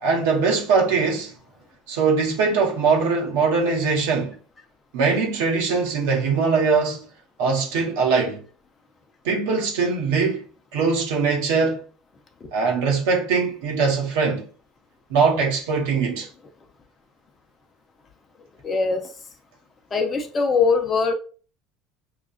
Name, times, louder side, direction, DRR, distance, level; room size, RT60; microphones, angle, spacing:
voice 1, 0.0-1.3 1.9-4.3 4.9-7.1 7.4-8.4 9.2-10.4 10.7-11.8 12.5-14.4 15.1-16.3, right 4 dB, 75° right, 1.0 m, -21 dB
voice 2, 18.6-19.1 19.9-21.1, left 4 dB, 30° left, 0.7 m, -21 dB
5.8 x 2.4 x 2.4 m
hypercardioid pair, 75°, 0 cm